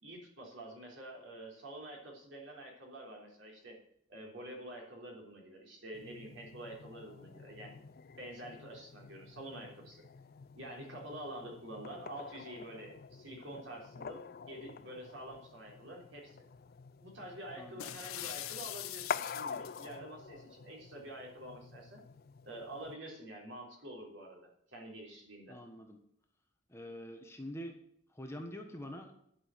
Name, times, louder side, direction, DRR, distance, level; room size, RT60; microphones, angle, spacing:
voice 1, 0.0-3.8 4.1-7.8 8.2-10.0 10.5-16.4 17.0-22.0 22.4-25.6, right 1 dB, 60° right, 0 dB, 3.6 m, -47 dB
sound 1, 5.9-23.0, left 6 dB, 45° left, 0.4 m, -47 dB
voice 2, 17.5-18.0 25.5-26.0 26.7-27.7 28.1-29.1, equal, 15° left, 3 dB, 1.2 m, -45 dB
sound 2, 17.8-19.9, left 13 dB, 90° left, 0.7 m, -43 dB
11.5 x 6.2 x 7.8 m, 0.72 s
head